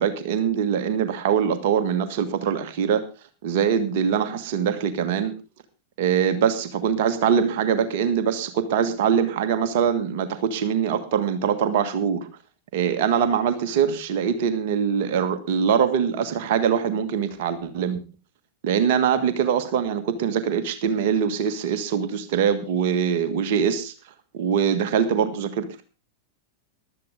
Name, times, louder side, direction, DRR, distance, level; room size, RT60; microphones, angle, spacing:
voice 1, 0.0-3.0 3.4-5.3 6.0-12.3 12.7-18.0 18.6-23.9 24.3-25.8, right 7 dB, 50° right, 10 dB, 1.6 m, -23 dB
15.5 x 12.5 x 3.7 m, 0.32 s
figure-of-eight pair, 90°, 0 cm